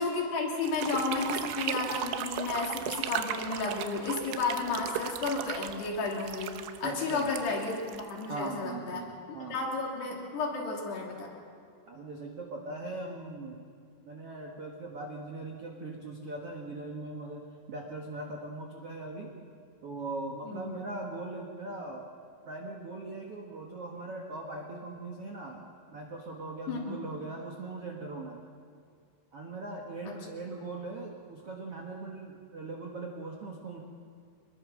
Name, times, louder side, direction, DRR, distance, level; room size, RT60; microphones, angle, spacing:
voice 1, 0.0-11.3 20.4-20.7 26.7-27.0 30.1-30.2, left 3 dB, 60° left, -1 dB, 4.9 m, -32 dB
sound 1, 0.6-8.6, right 10 dB, 90° right, 3.4 m, -37 dB
voice 2, 6.8-7.3 8.3-9.6 11.9-13.6 14.0-19.3 19.8-22.0 22.4-25.6 25.9-28.5 29.3-33.8, right 2 dB, 70° right, 0 dB, 1.3 m, -40 dB
25.5 x 21.0 x 6.3 m, 2.2 s
omnidirectional pair, 5.4 m